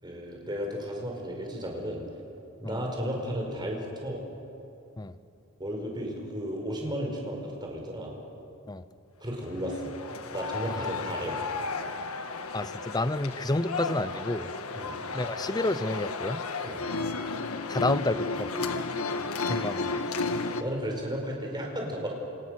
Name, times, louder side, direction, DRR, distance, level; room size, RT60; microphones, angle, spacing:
voice 1, 0.0-2.0 2.6-4.2 5.6-8.1 9.2-9.9 10.3-11.4 14.7-14.9 16.6-16.8 19.7-20.0 20.6-22.1, equal, 20° right, 0 dB, 4.9 m, -34 dB
sound 1, 9.5-20.6, left 4 dB, 85° left, 1.6 m, -33 dB
voice 2, 12.5-14.5 15.1-16.4 17.7-18.5 19.4-19.9, left 2 dB, 20° left, 13 dB, 0.8 m, -30 dB
28.0 x 27.5 x 6.5 m, 2.8 s
head